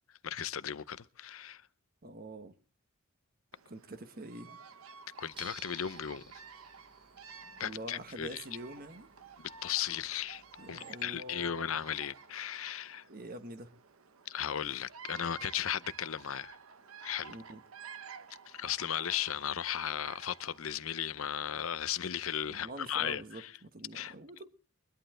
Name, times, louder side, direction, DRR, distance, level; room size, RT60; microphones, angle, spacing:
voice 1, 0.2-1.7 5.2-6.4 7.6-8.4 9.4-10.4 10.7-13.1 14.3-16.6 17.0-17.4 18.5-23.5 23.9-24.1, left 9 dB, 75° left, 0.6 m, -36 dB
voice 2, 2.0-2.5 3.6-4.6 7.6-9.1 10.6-11.7 13.1-13.7 17.3-17.6 22.5-24.5, right 1 dB, 45° right, 1.4 m, -45 dB
Bird vocalization bird call bird song, 3.5-20.8, right 6 dB, 85° right, 1.0 m, -53 dB
sound 1, 5.3-10.7, right 4 dB, 25° right, 1.3 m, -57 dB
23.0 x 11.5 x 3.7 m
head